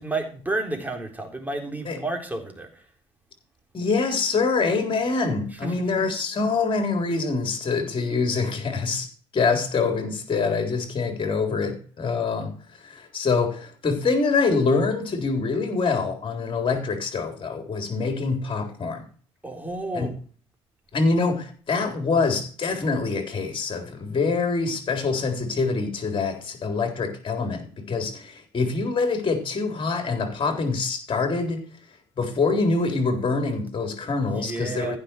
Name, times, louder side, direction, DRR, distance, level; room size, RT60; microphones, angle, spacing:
voice 1, 0.0-2.7 5.5-5.9 19.4-20.1 34.3-35.0, right 2 dB, 10° right, 4.0 m, -31 dB
voice 2, 3.7-9.1 9.3-12.5 12.8-19.0 19.9-20.1 20.9-31.7 32.2-35.0, left 4 dB, 35° left, 3.7 m, -25 dB
15.0 x 6.0 x 6.0 m
figure-of-eight pair, 55°, 15 cm